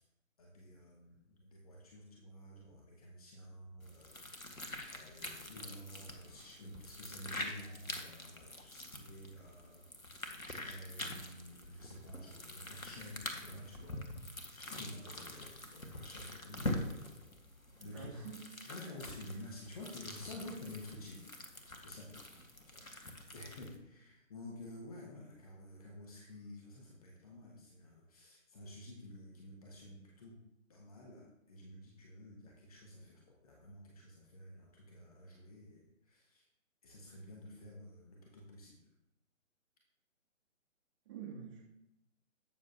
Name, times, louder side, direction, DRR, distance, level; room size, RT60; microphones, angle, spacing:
voice 1, 0.4-4.3 4.9-9.9 10.6-14.0 14.6-17.4 17.8-18.3 18.7-21.3 21.8-22.1 22.7-30.4 30.7-36.5 36.8-38.8, left 1 dB, 30° left, -1 dB, 1.6 m, -51 dB
sound 1, 3.8-23.8, left 1 dB, 85° left, 1.8 m, -45 dB
voice 2, 17.8-18.4 22.8-22.9 41.0-41.6, right 7 dB, 20° right, -4 dB, 2.7 m, -47 dB
13.0 x 7.5 x 2.9 m, 0.85 s
figure-of-eight pair, 145°, 40 cm